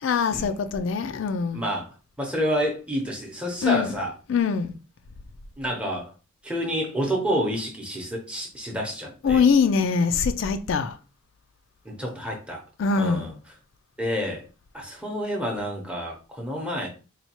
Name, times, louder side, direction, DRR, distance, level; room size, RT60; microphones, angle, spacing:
voice 1, 0.0-1.6 3.6-4.0 4.3-4.8 9.2-11.0 12.8-13.3, left 5 dB, 65° left, 0.3 m, -23 dB
voice 2, 1.5-1.9 2.2-4.1 5.6-6.1 6.4-9.4 11.8-12.6 13.0-13.3 14.0-14.4 14.7-16.9, equal, 5° right, 0.7 m, -28 dB
4.3 x 2.3 x 2.9 m
head